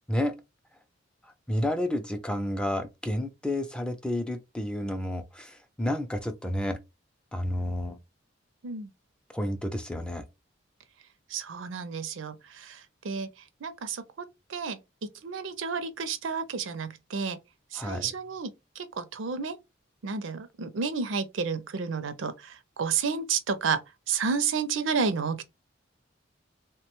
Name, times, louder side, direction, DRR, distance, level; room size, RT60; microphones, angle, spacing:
voice 1, 1.2-6.8 7.3-8.0 9.3-10.2 17.7-18.1, left 1 dB, 5° left, 0.3 m, -30 dB
voice 2, 11.3-13.3 13.6-17.4 17.7-19.6 20.0-23.8 24.1-25.4, right 5 dB, 80° right, 0.5 m, -31 dB
3.2 x 2.2 x 2.9 m
head